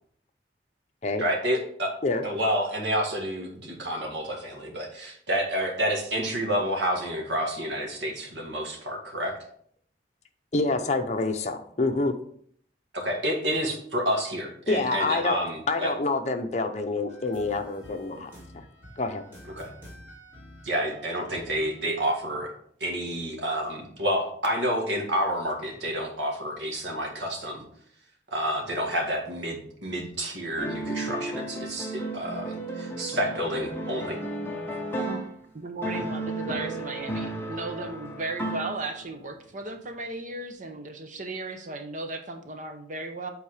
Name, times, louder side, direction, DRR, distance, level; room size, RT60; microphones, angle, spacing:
voice 1, 1.2-1.9 2.2-9.4 12.9-15.9 19.6-19.7 20.6-22.5 22.8-27.6 28.3-34.2, equal, 85° right, 1 dB, 1.9 m, -29 dB
voice 2, 10.5-12.1 14.7-15.4 15.7-18.6 19.0-19.2, left 3 dB, 40° left, 5 dB, 0.8 m, -27 dB
sound 1, 17.1-22.2, equal, 15° right, 3.1 m, -49 dB
sound 2, 30.6-35.4 35.8-39.2, right 2 dB, 15° left, 1.0 m, -34 dB
voice 3, 35.5-43.3, right 2 dB, 45° right, 6 dB, 0.8 m, -35 dB
8.4 x 4.1 x 4.9 m, 0.63 s
head